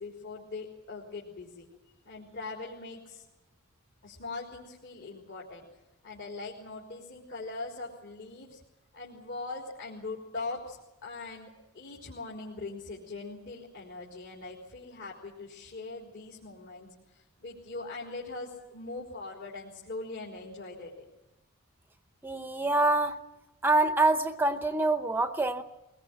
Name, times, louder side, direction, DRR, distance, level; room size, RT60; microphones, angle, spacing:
voice 1, 0.0-1.7 2.0-3.2 4.0-5.6 6.0-8.6 8.9-10.8 11.0-21.1, left 3 dB, 55° left, -3 dB, 3.9 m, -41 dB
voice 2, 22.2-23.2 23.6-25.6, right 2 dB, 10° right, 8 dB, 0.8 m, -25 dB
23.0 x 20.5 x 7.7 m, 1.0 s
head